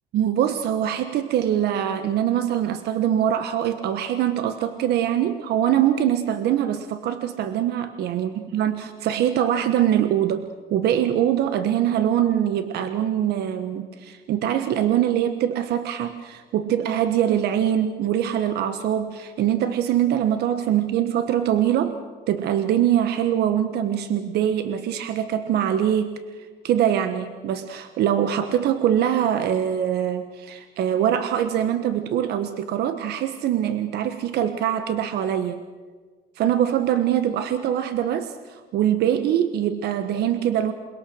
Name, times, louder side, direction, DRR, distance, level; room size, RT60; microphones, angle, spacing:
voice 1, 0.1-22.0 22.3-26.2 26.6-35.6 36.4-40.7, right 10 dB, 75° right, 9 dB, 1.4 m, -23 dB
28.0 x 21.5 x 6.5 m, 1.4 s
cardioid pair, 110°, 17 cm